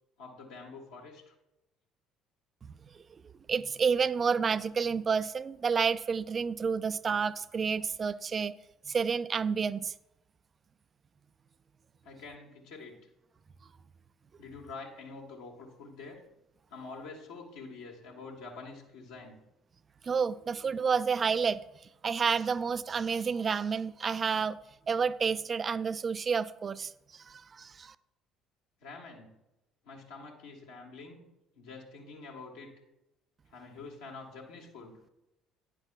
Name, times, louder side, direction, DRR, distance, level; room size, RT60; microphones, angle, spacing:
voice 1, 0.2-1.3 12.0-13.0 14.4-16.2 16.7-19.4 28.8-29.3 29.8-31.2 31.5-32.7 33.5-35.0, left 3 dB, 70° left, 1.6 m, -46 dB
voice 2, 3.5-8.5 8.9-9.9 20.0-21.6 22.0-24.6 24.9-27.9, right 6 dB, 35° right, 0.3 m, -30 dB
9.5 x 4.6 x 4.6 m
figure-of-eight pair, 55°, 0 cm